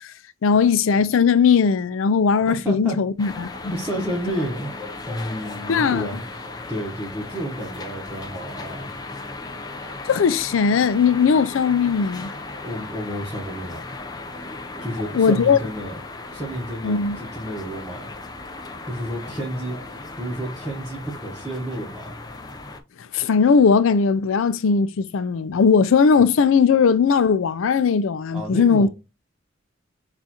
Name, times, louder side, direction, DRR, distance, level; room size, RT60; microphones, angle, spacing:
voice 1, 0.4-3.7 5.7-6.1 10.1-12.3 15.1-15.6 16.8-17.2 23.1-28.9, left 5 dB, 85° left, 0.4 m, -18 dB
voice 2, 2.4-3.0 3.7-4.7 5.1-8.9 12.6-13.9 14.8-15.9 16.3-18.1 18.9-19.8 20.2-22.1 28.3-28.9, equal, 5° right, 1.0 m, -31 dB
sound 1, 3.2-22.8, left 3 dB, 20° left, 0.5 m, -36 dB
6.6 x 2.4 x 2.9 m
head